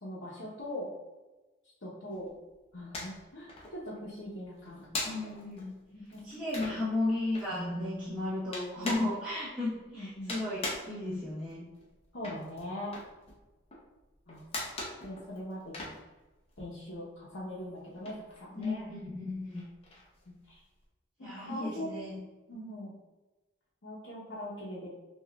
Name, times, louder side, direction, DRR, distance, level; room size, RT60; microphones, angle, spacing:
voice 1, 0.0-0.9 1.8-2.3 2.7-5.3 5.9-6.4 9.9-10.4 12.1-12.9 14.3-14.4 15.0-15.9 16.6-18.9 20.5-20.6 21.2-21.9 22.5-22.9 23.8-24.9, left 1 dB, 70° left, -9 dB, 0.8 m, -41 dB
sound 1, 2.2-3.2 3.5-16.9 17.1-20.8, left 2 dB, 30° left, 0.6 m, -41 dB
voice 2, 5.0-5.7 6.2-11.7 18.6-19.6 21.2-22.2, left 2 dB, 5° right, -14 dB, 1.0 m, -34 dB
5.8 x 2.4 x 2.2 m, 1.1 s
head